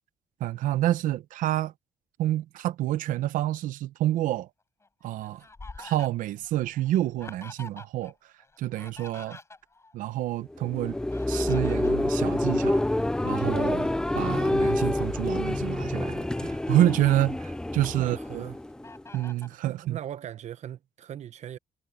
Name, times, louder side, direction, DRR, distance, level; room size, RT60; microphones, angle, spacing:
voice 1, 0.4-1.7 2.2-4.5 5.0-5.4 5.8-8.1 8.6-9.4 9.9-11.0 11.3-12.8 13.2-13.9 14.1-18.4 19.1-20.0, right 14 dB, 90° right, 0.7 m, -28 dB
Fowl, 4.8-8.1 8.4-9.9 10.9-13.0 13.4-13.6 14.3-15.3 15.9-16.0 16.4-17.2 17.7-18.4 18.8-19.6, left 3 dB, 20° left, 6.7 m, -47 dB
sound 1, 10.5-19.2, left 1 dB, 5° left, 0.3 m, -27 dB
voice 2, 17.9-18.6 19.7-21.6, right 10 dB, 60° right, 0.9 m, -39 dB
cardioid pair, 120°, 13 cm